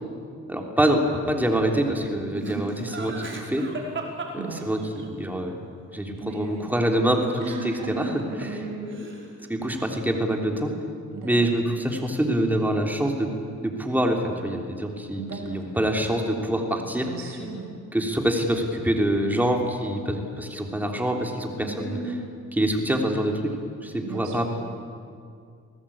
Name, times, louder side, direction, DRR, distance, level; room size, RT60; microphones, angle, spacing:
voice 1, 0.5-3.7 4.3-4.8 5.2-5.6 5.9-8.1 8.4-8.5 9.5-10.7 11.2-13.3 13.6-17.1 17.9-22.0 22.6-23.5 23.8-24.5, right 1 dB, 5° right, 2 dB, 3.4 m, -25 dB
Laughter, 2.3-5.0 7.8-8.6 8.9-9.5, right 3 dB, 40° right, 5.1 m, -35 dB
voice 2, 4.4-4.7 6.2-6.7 7.4-9.3 11.1-11.5 15.2-15.6 17.0-17.8 21.6-22.2 24.0-24.5, right 3 dB, 80° right, 1 dB, 6.4 m, -35 dB
27.0 x 19.0 x 8.8 m, 2.3 s
cardioid pair, 90°, 30 cm